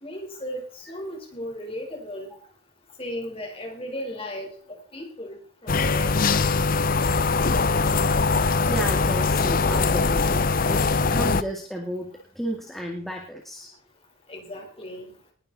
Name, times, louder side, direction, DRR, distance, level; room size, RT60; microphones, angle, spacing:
voice 1, 0.0-2.3 3.0-6.2 14.3-15.1, left 1 dB, 25° left, 3 dB, 4.3 m, -36 dB
sound 1, 5.7-11.4, left 4 dB, 45° left, 0.6 m, -22 dB
voice 2, 8.7-10.4 10.7-13.7, right 1 dB, ahead, 0 dB, 2.1 m, -32 dB
19.5 x 11.0 x 4.1 m, 0.39 s
head